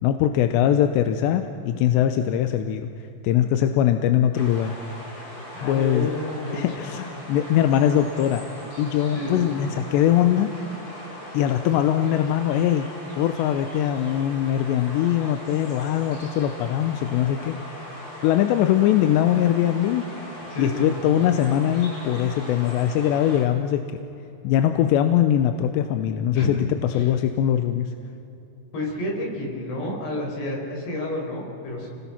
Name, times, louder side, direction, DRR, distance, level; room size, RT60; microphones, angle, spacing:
voice 1, 0.0-4.8 5.6-6.1 6.5-8.5 8.8-10.5 11.3-12.9 13.2-17.8 18.2-20.1 20.6-23.8 24.4-26.7 26.9-27.9, left 11 dB, 80° left, 7 dB, 2.9 m, -21 dB
sound 1, 4.3-23.4, left 1 dB, 35° left, 5.4 m, -40 dB
voice 2, 5.5-6.9 9.1-9.5 20.5-20.9 26.3-27.1 28.7-31.9, left 1 dB, 65° left, -1 dB, 6.9 m, -30 dB
29.5 x 20.0 x 5.9 m, 2.9 s
omnidirectional pair, 5.1 m